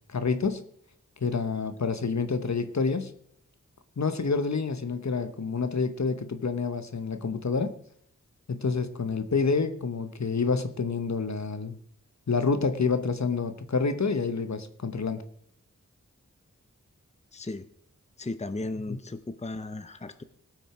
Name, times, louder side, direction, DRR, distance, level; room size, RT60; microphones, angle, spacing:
voice 1, 0.1-0.6 1.2-3.1 4.0-7.7 8.5-11.8 12.3-15.2 18.9-19.0, left 4 dB, 65° left, 11 dB, 1.0 m, -28 dB
voice 2, 17.3-17.7 18.2-20.2, left 2 dB, 20° left, 11 dB, 0.7 m, -35 dB
18.0 x 6.3 x 4.9 m, 0.65 s
wide cardioid pair, 60°, 31 cm